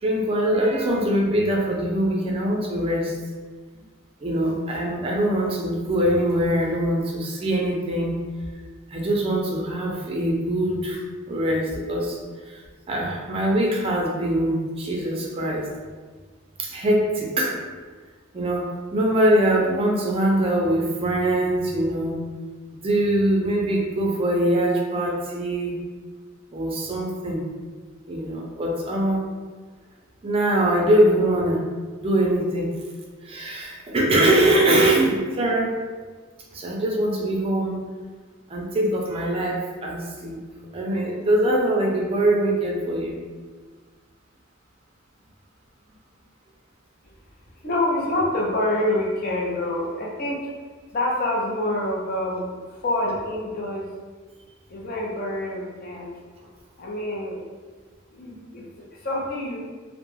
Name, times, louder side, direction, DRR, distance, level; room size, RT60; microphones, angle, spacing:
voice 1, 0.0-3.1 4.2-8.2 8.9-11.0 11.3-12.2 12.5-12.6 12.9-15.7 16.6-17.6 18.3-22.2 22.7-25.8 26.5-27.4 28.1-29.2 30.2-31.6 32.0-32.8 33.2-35.8 36.5-37.8 38.5-40.4 40.7-43.2, right 1 dB, 30° right, -2 dB, 0.4 m, -23 dB
voice 2, 47.6-50.4 50.9-53.9 54.7-56.1 56.8-57.4 58.1-59.6, left 1 dB, 50° left, -3 dB, 0.5 m, -27 dB
2.2 x 2.0 x 3.1 m, 1.4 s
head